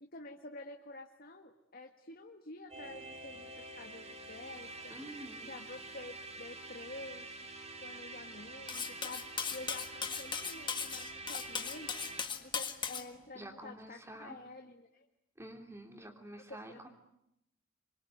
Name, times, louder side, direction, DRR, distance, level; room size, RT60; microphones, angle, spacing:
voice 1, 0.0-4.9 5.5-7.3 7.8-11.9 12.4-15.1 16.5-16.9, left 2 dB, 45° left, 4 dB, 1.7 m, -49 dB
sound 1, 2.7-12.2, right 2 dB, 30° right, 2.5 m, -47 dB
voice 2, 4.9-5.5 13.3-14.4 15.4-16.9, right 1 dB, 15° right, 4 dB, 3.4 m, -48 dB
Cutlery silverware, 8.7-13.0, left 6 dB, 25° left, 1.7 m, -38 dB
26.5 x 24.0 x 9.4 m, 0.82 s
head